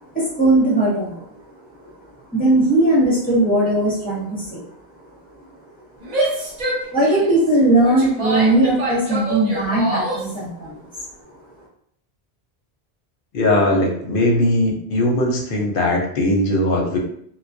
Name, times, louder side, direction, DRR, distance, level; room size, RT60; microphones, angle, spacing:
voice 1, 0.0-1.4 1.8-1.9 2.3-4.6 6.9-10.9, right 1 dB, 10° left, -6 dB, 0.7 m, -18 dB
Female speech woman speaking / Yell, 6.0-10.4, right 1 dB, 45° right, 0.7 m, -26 dB
voice 2, 13.3-17.0, left 1 dB, 60° left, 0 dB, 0.7 m, -19 dB
2.2 x 2.2 x 2.5 m, 0.68 s
omnidirectional pair, 1.1 m